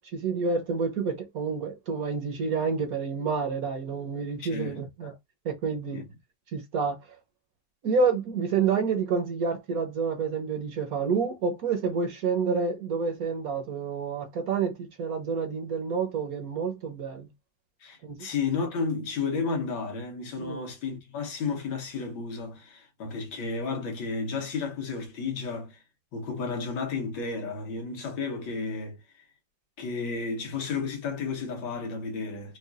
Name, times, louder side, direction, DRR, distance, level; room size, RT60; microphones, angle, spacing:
voice 1, 0.0-5.1 5.4-6.0 6.5-7.0 7.8-17.3 18.0-18.2 20.4-20.6, right 5 dB, 60° right, 1.1 m, -28 dB
voice 2, 4.4-4.7 5.0-5.2 5.9-6.1 17.8-25.8 26.1-29.2 29.8-32.6, left 4 dB, 85° left, 1.8 m, -32 dB
4.8 x 2.4 x 2.4 m
omnidirectional pair, 2.0 m